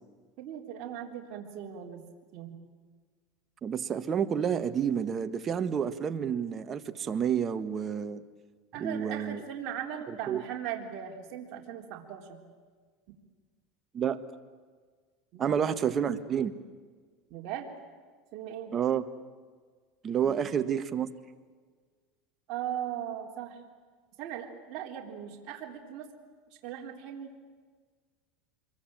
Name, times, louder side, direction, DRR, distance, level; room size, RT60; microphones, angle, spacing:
voice 1, 0.4-2.0 2.3-2.6 8.7-12.4 15.3-15.6 17.3-17.7 18.3-18.7 20.2-20.5 22.5-23.6 24.2-26.1 26.6-27.3, right 9 dB, 55° right, 0 dB, 3.9 m, -38 dB
voice 2, 3.6-8.2 8.8-9.4 10.1-10.4 13.9-14.2 15.4-16.5 18.7-19.0 20.0-21.1, right 8 dB, 30° right, 10 dB, 1.7 m, -29 dB
26.5 x 23.0 x 9.1 m, 1.5 s
supercardioid pair, 125°, 0 cm